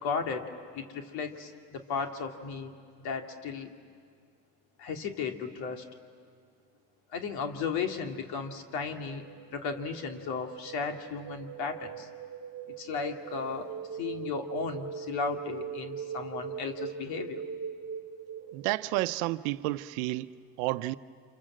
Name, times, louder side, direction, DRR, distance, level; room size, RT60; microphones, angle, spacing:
voice 1, 0.0-2.7 3.0-3.7 4.8-5.8 7.1-12.1 12.8-17.4, left 5 dB, 65° left, 2.7 m, -35 dB
sound 1, 9.1-18.8, right 7 dB, 35° right, 1.1 m, -41 dB
voice 2, 18.5-20.3 20.6-20.9, right 18 dB, 80° right, 0.9 m, -30 dB
29.5 x 26.5 x 7.6 m
supercardioid pair, 100°, 40 cm